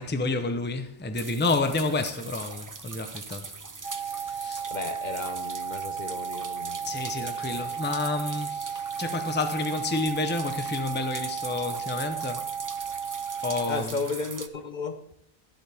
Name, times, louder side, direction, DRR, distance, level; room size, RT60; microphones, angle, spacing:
voice 1, 0.0-3.5 3.8-4.7 6.8-12.5 13.0-13.1 13.4-14.0, left 3 dB, 10° left, 0.7 m, -30 dB
sound 1, 1.1-14.5, right 4 dB, 30° right, 0.4 m, -41 dB
sound 2, 3.8-13.8, right 7 dB, 65° right, 1.0 m, -34 dB
voice 2, 4.7-7.7 13.7-15.0, left 4 dB, 50° left, 0.9 m, -35 dB
12.0 x 11.5 x 3.5 m
omnidirectional pair, 1.1 m